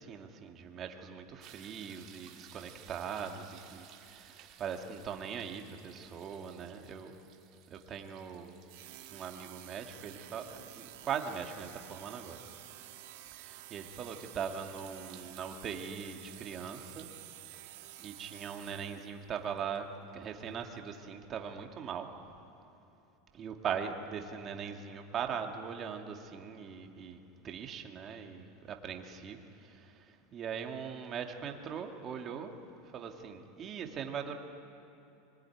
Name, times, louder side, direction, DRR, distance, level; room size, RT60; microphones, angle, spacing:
voice 1, 0.0-7.1 7.7-8.5 9.1-12.6 13.3-17.1 17.6-17.7 18.0-22.1 23.3-27.2 27.4-32.5 32.9-34.3, right 7 dB, 30° right, 4 dB, 2.0 m, -40 dB
sound 1, 1.4-20.5 20.9-21.0, right 11 dB, 45° right, 2.2 m, -60 dB
sound 2, 8.7-19.2, right 14 dB, 70° right, 1.6 m, -51 dB
24.5 x 20.5 x 9.9 m, 2.9 s
supercardioid pair, 145°, 0 cm